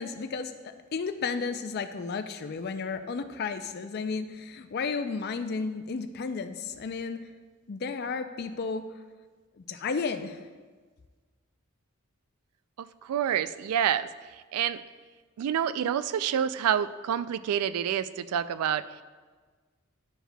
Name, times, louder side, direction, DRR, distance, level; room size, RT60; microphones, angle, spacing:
voice 1, 0.0-7.2 7.7-8.9 9.6-10.4, left 4 dB, 45° left, 9 dB, 0.4 m, -33 dB
voice 2, 12.8-14.1 14.5-14.8 15.4-18.9, right 9 dB, 90° right, 16 dB, 0.3 m, -28 dB
11.5 x 4.6 x 2.2 m, 1.4 s
head